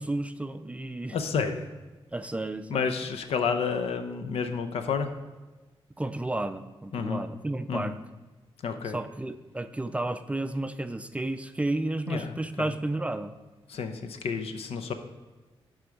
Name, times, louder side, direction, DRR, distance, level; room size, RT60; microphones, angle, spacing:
voice 1, 0.0-1.2 2.1-2.8 6.0-7.9 8.9-13.3, right 2 dB, 15° right, 10 dB, 0.4 m, -32 dB
voice 2, 1.1-1.7 2.7-5.1 6.9-7.2 7.7-8.0 8.6-9.0 12.1-12.7 13.7-14.9, left 5 dB, 80° left, 8 dB, 0.7 m, -30 dB
11.0 x 3.8 x 4.6 m, 1.2 s
cardioid pair, 95°, 10 cm